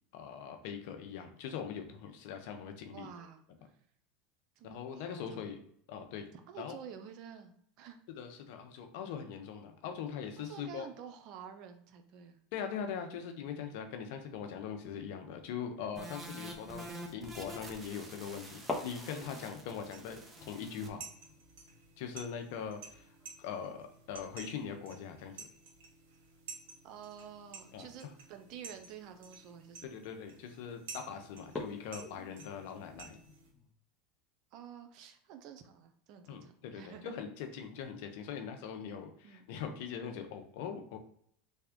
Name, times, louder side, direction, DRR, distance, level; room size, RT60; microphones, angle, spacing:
voice 1, 0.1-3.1 4.6-5.6 5.9-6.3 6.6-6.8 8.2-10.9 12.5-21.0 22.0-23.1 23.4-25.4 27.7-28.1 29.8-33.2 36.3-41.0, left 7 dB, 70° left, 5 dB, 0.6 m, -41 dB
voice 2, 2.9-3.4 4.6-5.5 6.3-8.0 10.4-12.4 26.8-29.9 34.5-37.1 39.2-39.4, right 8 dB, 55° right, 7 dB, 0.5 m, -50 dB
sound 1, 16.0-20.9, right 1 dB, 20° right, 0.7 m, -48 dB
sound 2, 18.7-25.0 25.2-25.3 25.7-26.1 27.1-27.3 27.9-28.0 28.5-28.6 29.0-29.3 29.9-30.3 30.7-30.8 31.4-33.7, left 2 dB, 20° left, 0.7 m, -46 dB
sound 3, 19.9-33.5, right 5 dB, 75° right, 0.9 m, -53 dB
3.5 x 2.2 x 3.5 m, 0.67 s
hypercardioid pair, 95°, 0 cm